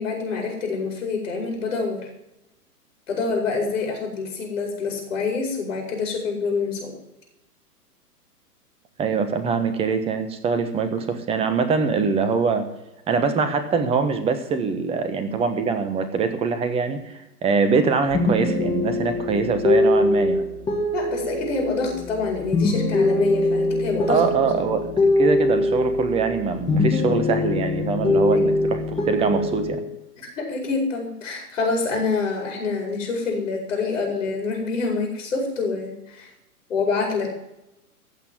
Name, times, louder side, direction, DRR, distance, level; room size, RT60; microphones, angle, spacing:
voice 1, 0.0-2.1 3.1-7.0 20.9-24.8 28.3-28.7 30.2-36.3 36.7-37.3, left 4 dB, 55° left, 1 dB, 4.9 m, -26 dB
voice 2, 9.0-12.6 13.1-20.4 24.1-29.8, right 5 dB, 10° right, 9 dB, 1.3 m, -23 dB
sound 1, 18.1-26.4 26.7-29.8, left 2 dB, 10° left, 2.1 m, -22 dB
15.5 x 5.9 x 9.7 m, 0.89 s
figure-of-eight pair, 120°, 47 cm